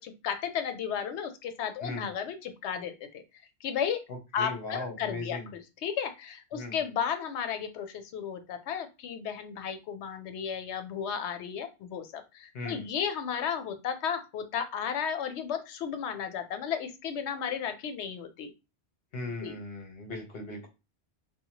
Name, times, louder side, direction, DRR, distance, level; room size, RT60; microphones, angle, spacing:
voice 1, 0.0-3.2 3.6-4.0 4.3-18.5 19.4-19.6, left 7 dB, 85° left, 8 dB, 0.9 m, -34 dB
voice 2, 4.3-5.5 6.5-6.8 12.5-12.9 19.1-20.7, left 2 dB, 65° left, 2 dB, 1.1 m, -38 dB
2.8 x 2.1 x 2.8 m, 0.26 s
omnidirectional pair, 1.1 m